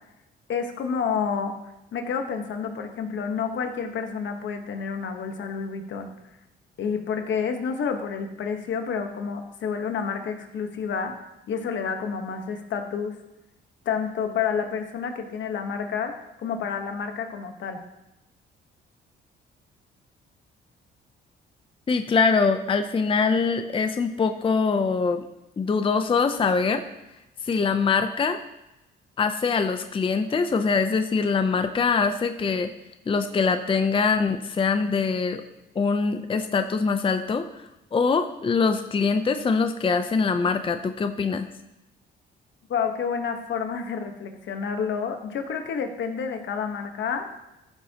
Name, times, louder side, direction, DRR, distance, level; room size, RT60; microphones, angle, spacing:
voice 1, 0.5-1.5 1.9-6.1 6.8-11.2 11.5-13.1 13.8-16.1 16.4-17.8 42.7-47.3, left 6 dB, 70° left, 5 dB, 1.3 m, -29 dB
voice 2, 21.9-25.2 25.6-26.8 27.4-28.4 29.2-32.7 33.1-35.4 35.8-37.6 37.9-41.5, left 5 dB, 25° left, 8 dB, 0.6 m, -23 dB
14.0 x 6.9 x 2.9 m, 0.96 s
cardioid pair, 90°, 20 cm